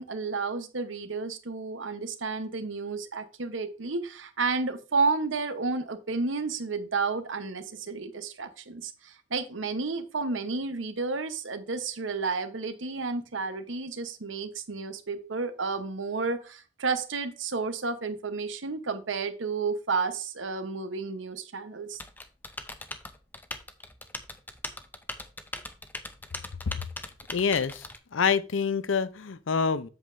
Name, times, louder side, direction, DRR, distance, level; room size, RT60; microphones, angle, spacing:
voice 1, 0.0-22.0, right 4 dB, 85° right, 1.0 m, -31 dB
Typing, 22.0-28.0, left 2 dB, 10° left, 0.6 m, -40 dB
voice 2, 27.3-29.9, left 6 dB, 85° left, 0.6 m, -27 dB
7.9 x 7.4 x 2.6 m
head